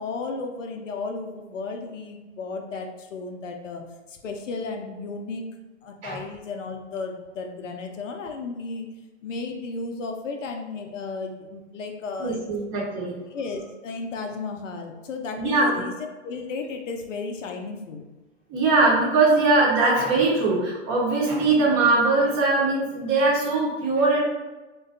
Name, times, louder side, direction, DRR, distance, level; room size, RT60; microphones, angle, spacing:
voice 1, 0.0-5.5 5.8-8.9 9.2-12.4 13.3-18.0, left 4 dB, 80° left, 4 dB, 0.5 m, -34 dB
voice 2, 12.2-13.1 15.4-15.8 18.5-24.2, right 3 dB, 35° right, -3 dB, 0.8 m, -21 dB
2.6 x 2.2 x 2.4 m, 1.1 s
hypercardioid pair, 115°, 37 cm